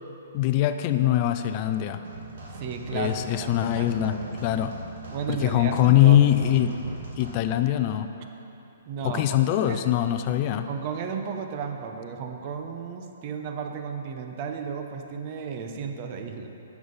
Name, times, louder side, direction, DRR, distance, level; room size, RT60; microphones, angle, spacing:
voice 1, 0.3-2.0 2.9-4.8 5.3-6.8 7.2-8.1 9.0-10.7, left 12 dB, 35° left, 9 dB, 0.4 m, -22 dB
sound 1, 2.0-7.4, right 2 dB, 60° right, 2.4 m, -40 dB
voice 2, 2.5-4.2 5.1-6.2 8.9-9.2 9.6-9.8 10.7-16.5, right 6 dB, 40° right, 5 dB, 0.8 m, -34 dB
10.0 x 7.2 x 5.4 m, 3.0 s
hypercardioid pair, 140°, 0 cm